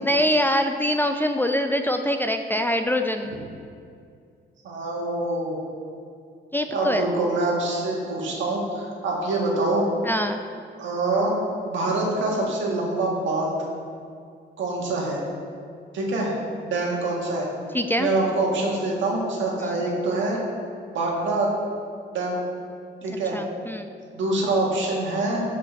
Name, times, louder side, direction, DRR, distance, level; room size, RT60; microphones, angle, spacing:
voice 1, 0.0-3.4 6.5-7.0 10.0-10.4 17.7-18.1 19.6-19.8 23.1-23.9, equal, 10° left, 6 dB, 0.3 m, -24 dB
voice 2, 4.6-5.6 6.7-9.9 10.8-11.3 11.6-13.6 14.6-15.2 15.9-16.3 16.6-17.5 18.0-20.4 20.9-21.5 22.1-22.4 23.0-23.4 24.1-25.4, right 2 dB, 75° right, -2 dB, 1.7 m, -25 dB
6.2 x 5.2 x 6.0 m, 2.3 s
cardioid pair, 90°, 20 cm